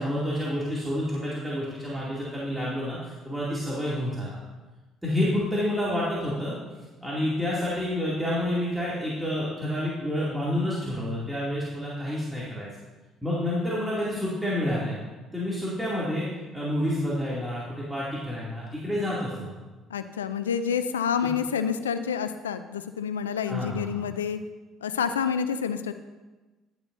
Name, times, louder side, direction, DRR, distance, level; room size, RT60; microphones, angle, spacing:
voice 1, 0.0-4.4 5.0-6.5 7.0-12.7 13.2-15.0 15.3-16.3 16.5-19.6 23.5-24.0, left 1 dB, 5° right, -8 dB, 2.5 m, -29 dB
voice 2, 19.9-24.4 24.8-25.9, left 7 dB, 90° left, 11 dB, 0.4 m, -28 dB
10.5 x 8.9 x 2.6 m, 1.2 s
hypercardioid pair, 55°, 0 cm